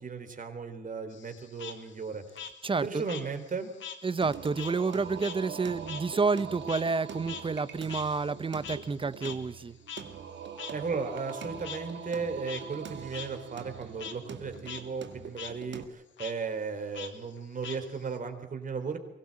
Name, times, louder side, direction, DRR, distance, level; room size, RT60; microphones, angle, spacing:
voice 1, 0.0-2.2 2.8-3.7 10.7-19.0, right 5 dB, 40° right, 8 dB, 3.8 m, -36 dB
Frog, 1.1-4.0 4.3-9.0 9.2-9.3 9.9-10.0 10.6-10.7 11.6-11.8 12.3-12.6 13.1-13.3 13.6-14.1 14.5-14.8 15.1-15.5 16.2-16.3 16.9-18.2, left 7 dB, 70° left, 2.3 m, -42 dB
voice 2, 2.6-3.0 4.0-9.8, right 4 dB, 25° right, 15 dB, 1.0 m, -29 dB
Singing, 4.2-15.8, right 7 dB, 65° right, 2.0 m, -43 dB
23.5 x 17.0 x 8.8 m, 0.90 s
cardioid pair, 90°, 20 cm